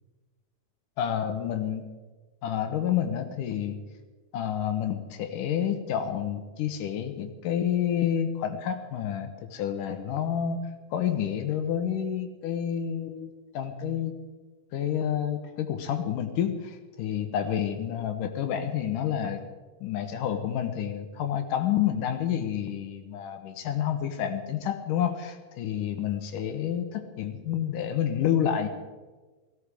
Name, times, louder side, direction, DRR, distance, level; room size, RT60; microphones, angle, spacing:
voice 1, 1.0-1.9 2.4-3.8 4.3-14.1 14.7-19.4 19.8-28.7, left 9 dB, 70° left, 7 dB, 2.6 m, -29 dB
18.0 x 16.0 x 4.9 m, 1.3 s
omnidirectional pair, 4.2 m